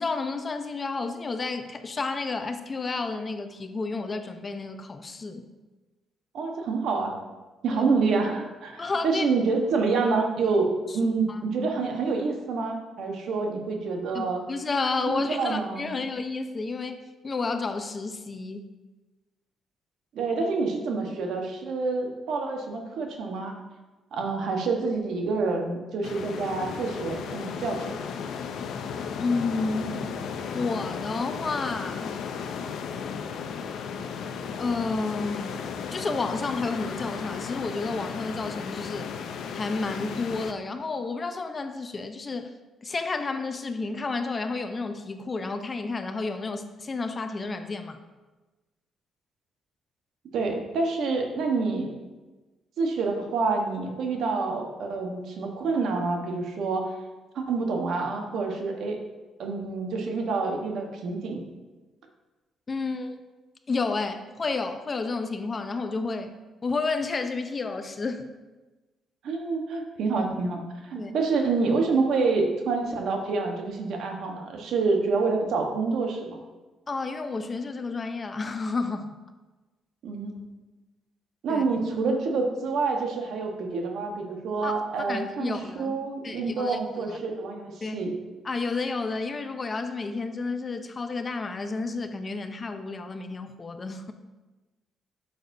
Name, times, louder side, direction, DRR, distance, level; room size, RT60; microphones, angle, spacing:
voice 1, 0.0-5.5 7.7-7.8 8.8-9.3 10.9-11.4 14.1-18.7 29.2-30.0 30.5-32.2 34.6-39.1 39.5-42.5 42.8-48.0 62.7-63.2 63.7-66.3 66.6-68.2 71.0-71.1 76.9-79.1 81.5-81.6 84.6-84.7 85.1-86.0 86.2-87.2 87.8-88.1 88.4-94.1, left 3 dB, 35° left, 8 dB, 0.6 m, -31 dB
voice 2, 6.3-7.1 7.6-14.4 15.1-16.0 20.1-23.5 24.1-28.0 50.3-52.0 52.8-56.9 57.3-59.0 59.4-61.4 69.2-76.4 80.0-80.4 81.4-88.1, right 4 dB, 75° right, 3 dB, 1.1 m, -27 dB
sound 1, 26.0-40.5, left 6 dB, 75° left, 0.5 m, -35 dB
9.0 x 6.9 x 2.7 m, 1.2 s
cardioid pair, 90°, 0 cm